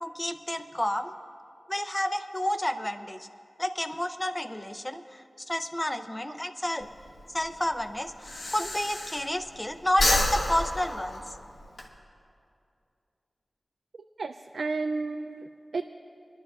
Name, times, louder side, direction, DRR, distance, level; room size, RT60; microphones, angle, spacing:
voice 1, 0.0-1.1 1.7-3.3 3.6-6.9 7.3-8.1 8.5-11.2, left 1 dB, 20° left, 8 dB, 0.6 m, -30 dB
Breathing, 6.8-9.6 9.9-11.9, left 1 dB, 75° left, 1.2 m, -29 dB
voice 2, 14.2-15.8, right 3 dB, 90° right, 6 dB, 0.3 m, -32 dB
24.0 x 11.5 x 2.4 m, 2.5 s
wide cardioid pair, 70°, 0 cm